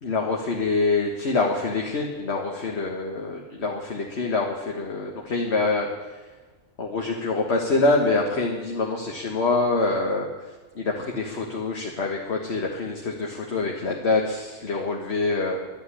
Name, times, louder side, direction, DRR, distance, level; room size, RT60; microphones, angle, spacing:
voice 1, 0.0-5.9 6.8-10.3 10.8-15.6, left 3 dB, 60° left, 0 dB, 1.7 m, -25 dB
12.0 x 8.7 x 10.0 m, 1.3 s
omnidirectional pair, 1.3 m